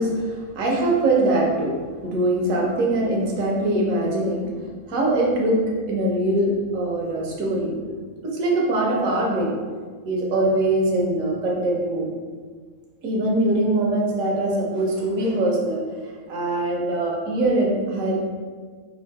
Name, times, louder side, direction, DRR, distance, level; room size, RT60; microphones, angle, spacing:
voice 1, 0.0-1.7 2.0-4.4 4.9-5.6 5.9-7.8 8.2-9.5 10.0-12.1 13.0-15.8 16.3-18.2, right 1 dB, 80° right, -2 dB, 1.2 m, -22 dB
3.7 x 2.6 x 4.6 m, 1.6 s
omnidirectional pair, 1.4 m